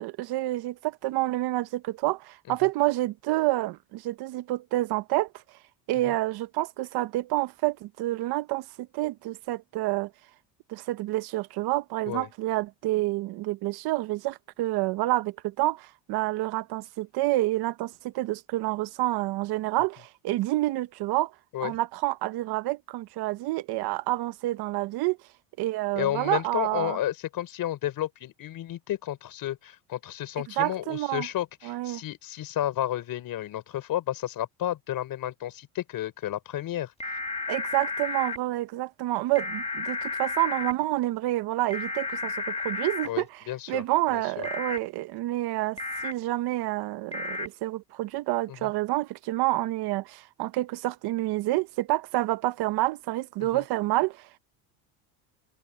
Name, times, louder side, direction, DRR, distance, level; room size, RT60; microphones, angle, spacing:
voice 1, 0.0-5.3 5.9-10.1 10.7-21.3 21.6-25.2 25.6-27.0 30.6-31.3 31.6-32.0 37.5-54.4, right 17 dB, 55° right, 0.9 m, -28 dB
voice 2, 26.0-36.9 43.0-43.8 44.1-44.5 48.5-48.7 53.4-53.6, left 12 dB, 45° left, 4.5 m, -32 dB
sound 1, 37.0-38.4 39.4-40.7 41.7-43.1 44.4-44.8 45.8-46.1 47.1-47.5, left 3 dB, 15° left, 1.6 m, -32 dB
cardioid pair, 130°, 45 cm